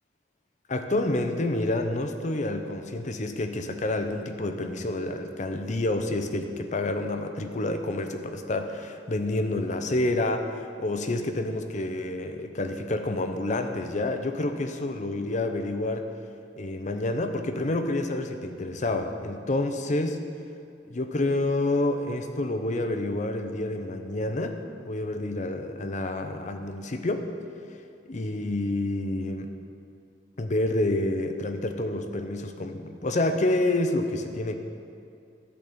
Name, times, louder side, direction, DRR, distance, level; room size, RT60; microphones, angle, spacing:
voice 1, 0.7-16.1 16.6-20.2 20.9-24.6 24.9-27.3 28.1-29.5 30.4-34.6, left 2 dB, 45° left, 7 dB, 0.7 m, -28 dB
12.0 x 4.2 x 7.8 m, 2.4 s
head